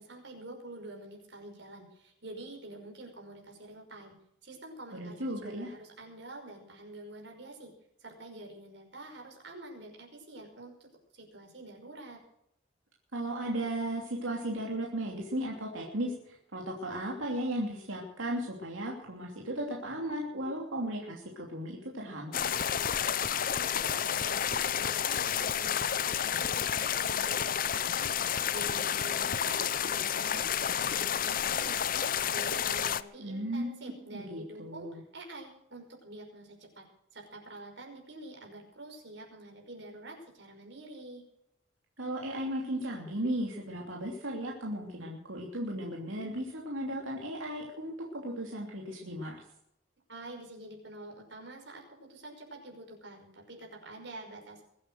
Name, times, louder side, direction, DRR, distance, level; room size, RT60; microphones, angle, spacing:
voice 1, 0.0-4.2 4.4-7.7 8.0-12.2 23.1-36.9 37.1-41.2 50.1-54.6, right 2 dB, 60° right, 1 dB, 5.7 m, -47 dB
voice 2, 4.9-5.7 13.1-22.4 33.2-35.0 42.0-49.4, right 1 dB, 80° right, -1 dB, 3.0 m, -36 dB
sound 1, 22.3-33.0, left 8 dB, 45° left, 0.6 m, -30 dB
22.5 x 9.1 x 6.5 m, 0.78 s
head